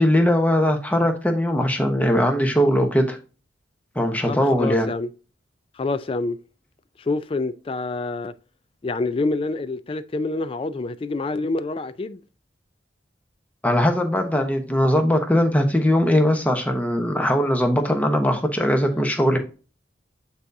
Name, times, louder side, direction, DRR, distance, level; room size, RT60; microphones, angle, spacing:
voice 1, 0.0-3.2 3.9-4.9 13.6-19.4, equal, 10° left, 0.9 m, -20 dB
voice 2, 4.3-5.1 5.8-6.4 7.0-8.3 8.8-12.2, left 3 dB, 30° left, 0.3 m, -27 dB
8.8 x 4.0 x 2.6 m
head